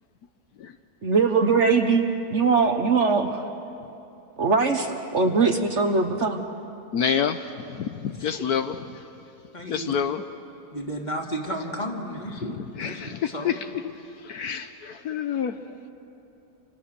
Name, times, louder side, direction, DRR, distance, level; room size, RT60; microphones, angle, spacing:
voice 1, 1.0-3.4 4.4-6.5, right 4 dB, 45° right, 5 dB, 1.3 m, -21 dB
voice 2, 6.9-7.4 7.8-8.7 9.7-10.2 12.8-13.5 14.2-15.6, left 8 dB, 70° left, 8 dB, 1.3 m, -27 dB
voice 3, 8.1-8.5 9.5-10.0 10.7-13.6, equal, 25° left, 1 dB, 2.5 m, -33 dB
28.0 x 28.0 x 6.7 m, 2.8 s
omnidirectional pair, 1.8 m